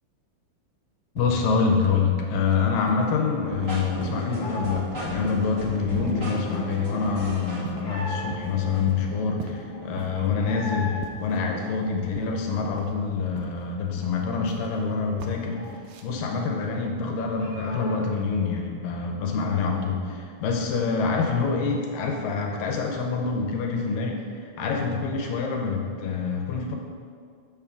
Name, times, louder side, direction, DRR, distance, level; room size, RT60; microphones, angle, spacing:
voice 1, 1.2-15.7 16.0-26.8, left 5 dB, 80° left, 1 dB, 2.3 m, -26 dB
sound 1, 1.2-1.6 1.8-2.1 2.3-2.6 2.9-3.2 3.5-3.7 4.1-4.3 4.6-4.9 5.2-5.6 6.0-6.2 6.5-6.7 7.1-7.3 7.7-8.0 8.3-8.5 8.9-9.6 10.0-10.1 10.5-10.8 11.0-11.9 12.2-12.9 13.4-13.6 14.0-14.8 15.2-15.4 15.6-16.0, right 7 dB, 85° right, 2.2 m, -40 dB
sound 2, 3.2-4.8 5.1-8.6 9.0-9.1 9.3-11.0 11.3-13.0 13.3-13.4 13.7-16.2 16.5-16.6 16.9-18.1, left 1 dB, 50° left, 2.0 m, -41 dB
sound 3, 3.4-10.2, right 1 dB, 60° right, 0.8 m, -36 dB
7.0 x 6.2 x 3.6 m, 2.2 s
omnidirectional pair, 4.0 m